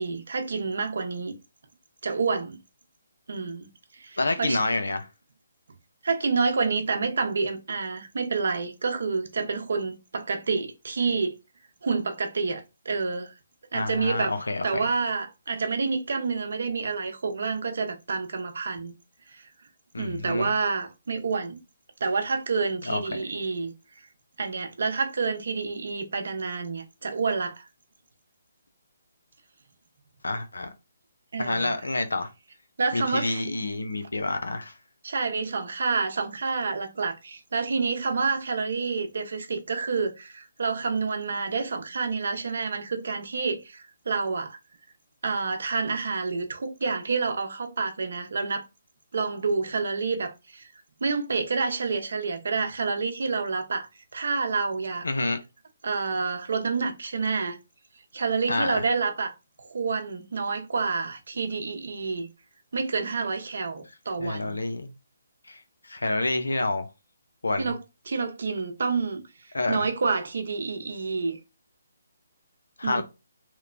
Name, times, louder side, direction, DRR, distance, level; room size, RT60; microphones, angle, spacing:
voice 1, 0.0-1.3 2.0-2.6 3.3-3.7 3.9-4.6 6.0-11.3 11.8-13.3 13.7-18.9 19.3-19.5 20.0-21.6 22.0-24.1 24.4-27.7 31.3-31.7 32.8-33.4 35.0-44.6 45.2-48.7 49.1-50.7 51.0-53.9 54.1-55.1 55.8-57.6 58.1-62.3 62.7-64.6 67.6-69.2 69.7-71.4 72.8-73.0, right 4 dB, 65° right, 0.6 m, -28 dB
voice 2, 4.2-5.1 13.7-14.9 19.9-20.5 22.9-23.2 30.2-30.7 31.4-32.3 32.9-34.7 55.0-55.4 58.5-58.8 64.2-64.9 65.5-65.6 65.9-66.8 67.4-67.7 69.5-69.9 72.8-73.0, left 2 dB, 85° left, 0.4 m, -28 dB
2.9 x 2.0 x 2.4 m
hypercardioid pair, 150°, 0 cm